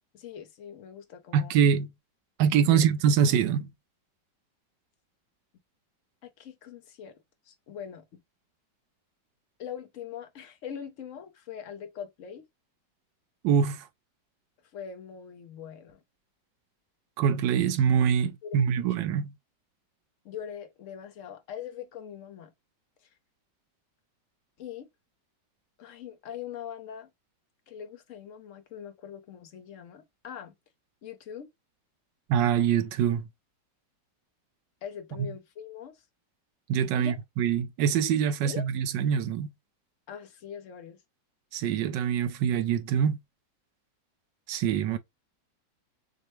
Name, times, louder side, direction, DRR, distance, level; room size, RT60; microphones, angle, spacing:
voice 1, 0.1-1.6 2.7-2.8 6.2-7.1 7.4-8.2 9.6-12.4 14.7-16.0 18.4-18.9 20.2-22.5 24.6-24.9 25.8-27.1 27.7-30.5 31.0-31.5 34.8-36.0 36.9-37.2 38.4-38.7 40.1-41.0, left 8 dB, 55° left, 1.0 m, -42 dB
voice 2, 1.3-1.9 2.4-3.7 13.4-13.9 17.2-19.3 32.3-33.3 36.7-39.5 41.5-43.2 44.5-45.0, right 8 dB, 85° right, 1.3 m, -24 dB
6.3 x 2.2 x 3.1 m
omnidirectional pair, 1.9 m